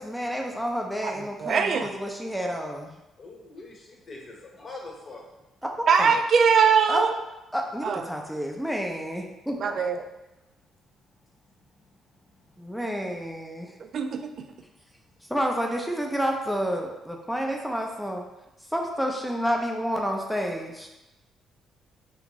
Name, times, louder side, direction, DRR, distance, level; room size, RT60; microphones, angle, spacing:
voice 1, 0.0-2.9 5.8-6.1 6.9-7.1 7.5-9.5 12.6-13.7 15.3-18.2 18.7-20.9, equal, ahead, 1 dB, 0.5 m, -29 dB
voice 2, 1.0-1.9 5.9-7.1 7.8-8.0 9.6-10.0 13.9-14.3, right 6 dB, 60° right, 7 dB, 0.3 m, -22 dB
voice 3, 3.2-5.4 9.6-9.8 11.2-12.8 14.9-15.0, left 2 dB, 45° left, -2 dB, 0.8 m, -45 dB
3.4 x 2.5 x 3.0 m, 0.95 s
cardioid pair, 90°, 0 cm